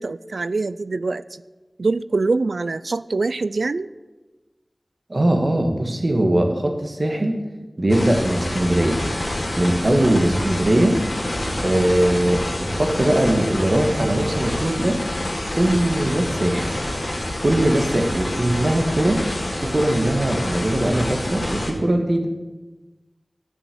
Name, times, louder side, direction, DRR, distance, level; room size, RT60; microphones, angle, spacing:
voice 1, 0.0-1.4 1.8-3.9, right 3 dB, 90° right, 17 dB, 0.3 m, -24 dB
voice 2, 5.1-7.4 7.8-9.0 9.6-11.0 11.6-15.0 15.5-16.7 17.4-19.2 19.6-22.3, right 1 dB, 50° right, 4 dB, 1.8 m, -20 dB
sound 1, 7.9-21.7, left 1 dB, 40° left, 2.4 m, -27 dB
11.5 x 6.1 x 8.5 m, 1.2 s
wide cardioid pair, 65°, 0 cm